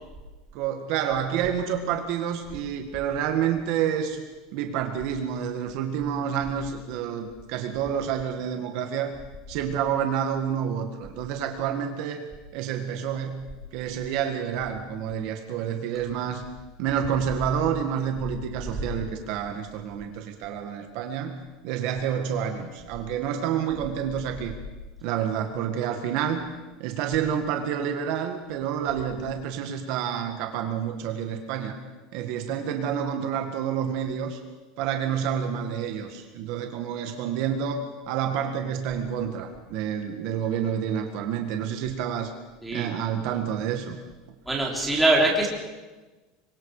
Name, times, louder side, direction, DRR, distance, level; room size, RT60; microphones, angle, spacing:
voice 1, 0.5-4.2 4.5-9.2 9.5-12.2 12.5-13.5 13.7-16.4 16.8-24.5 25.0-26.5 26.8-31.8 32.1-34.4 34.8-42.3 42.7-44.0, right 8 dB, 50° right, 5 dB, 2.0 m, -29 dB
voice 2, 42.6-42.9 44.5-45.5, right 2 dB, 5° right, -3 dB, 3.5 m, -22 dB
26.5 x 23.0 x 5.0 m, 1.2 s
supercardioid pair, 170°, 0 cm